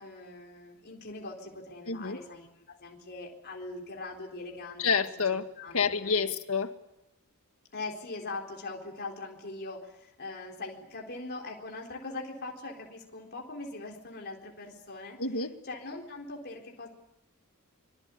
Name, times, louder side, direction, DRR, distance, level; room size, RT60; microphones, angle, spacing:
voice 1, 0.0-4.8 5.6-6.3 7.7-15.2 15.6-16.9, left 3 dB, 50° left, 0 dB, 4.0 m, -41 dB
voice 2, 1.9-2.2 4.8-5.5 5.7-6.7 15.2-15.5, left 5 dB, 70° left, 7 dB, 2.0 m, -28 dB
25.0 x 23.5 x 8.5 m, 0.93 s
head